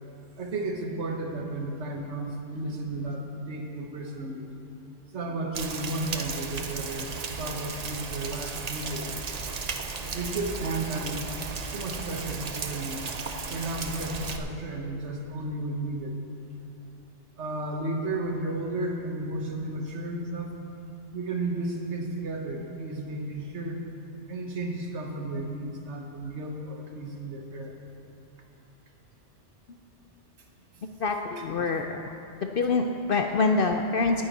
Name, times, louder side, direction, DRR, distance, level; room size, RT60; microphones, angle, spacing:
voice 1, 0.4-4.5 5.1-9.1 9.4-11.3 11.7-13.0 13.5-16.2 17.4-20.5 21.1-23.8 24.3-27.7, right 2 dB, 75° right, 2 dB, 1.6 m, -33 dB
Rain, 5.5-14.4, right 4 dB, 40° right, 0.7 m, -35 dB
voice 2, 30.8-32.1 32.4-34.2, left 3 dB, 55° left, 4 dB, 0.8 m, -26 dB
19.0 x 9.6 x 4.2 m, 2.7 s
omnidirectional pair, 1.2 m